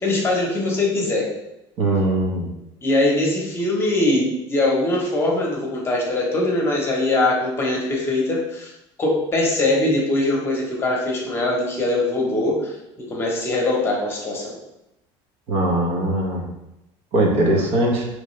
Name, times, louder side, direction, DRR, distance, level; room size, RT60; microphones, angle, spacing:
voice 1, 0.0-1.3 2.8-8.7 9.0-12.7 13.1-14.6, left 2 dB, 20° left, -2 dB, 1.1 m, -22 dB
voice 2, 1.8-2.5 15.5-16.5 17.1-18.1, right 1 dB, 60° right, -1 dB, 1.2 m, -20 dB
5.1 x 3.2 x 3.2 m, 0.90 s
cardioid pair, 155°, 12 cm